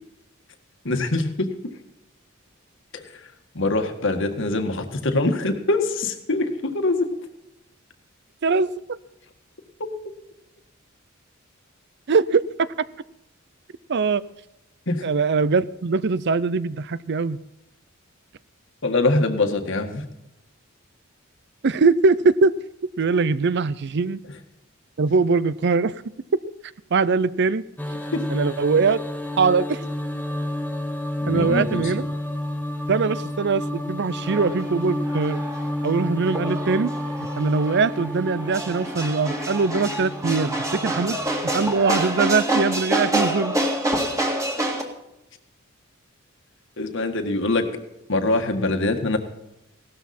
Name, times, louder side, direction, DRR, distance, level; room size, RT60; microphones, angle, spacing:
voice 1, 0.9-1.5 2.9-3.0 3.6-7.1 14.9-15.0 18.8-20.0 28.1-28.2 31.2-31.9 46.8-47.7 48.1-49.2, left 2 dB, 65° left, 6 dB, 1.8 m, -23 dB
voice 2, 12.1-12.4 13.9-14.2 15.0-17.4 21.6-22.5 23.0-24.2 25.0-26.0 26.9-27.6 28.3-29.0 29.4-29.8 31.3-32.0 32.9-35.4 35.8-36.9 37.4-41.2 41.4-43.6, right 4 dB, 55° right, 18 dB, 0.6 m, -21 dB
sound 1, 27.8-41.7, left 1 dB, 10° left, 1.0 m, -30 dB
sound 2, 34.2-44.8, right 1 dB, 15° right, 2.1 m, -27 dB
17.5 x 13.0 x 4.3 m, 0.88 s
head